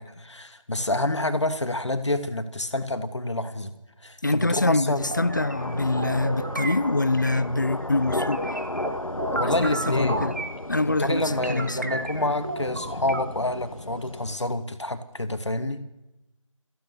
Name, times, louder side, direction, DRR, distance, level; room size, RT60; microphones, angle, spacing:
voice 1, 0.0-3.7 4.0-5.1 9.3-10.3 11.0-15.8, left 1 dB, 55° left, 2.5 m, -28 dB
voice 2, 4.2-8.6 9.4-10.3 10.7-11.9, left 2 dB, 35° left, 0.8 m, -25 dB
sound 1, 5.0-14.4, left 1 dB, 80° left, 1.7 m, -33 dB
sound 2, 5.1-7.4 7.8-10.6 11.1-13.2, right 2 dB, 25° right, 1.4 m, -34 dB
25.5 x 15.5 x 9.9 m
figure-of-eight pair, 165°, 17 cm